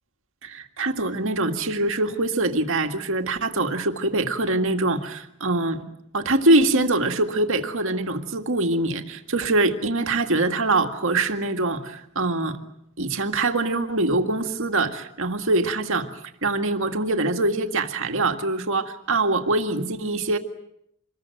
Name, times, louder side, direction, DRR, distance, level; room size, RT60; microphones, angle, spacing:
voice 1, 0.4-5.8 6.1-12.6 13.0-16.1 16.4-20.4, right 2 dB, 60° right, 5 dB, 2.0 m, -23 dB
26.5 x 21.5 x 9.2 m, 0.76 s
head